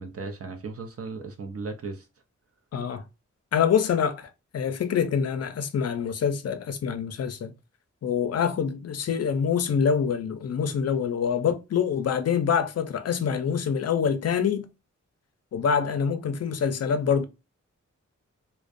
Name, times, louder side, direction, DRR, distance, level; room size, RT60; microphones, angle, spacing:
voice 1, 0.0-2.1, right 4 dB, 50° right, 0.5 m, -36 dB
voice 2, 2.7-3.0 3.5-7.5 8.0-14.7 15.5-17.3, left 7 dB, 55° left, 0.5 m, -25 dB
2.4 x 2.1 x 2.4 m
cardioid pair, 65°, 30 cm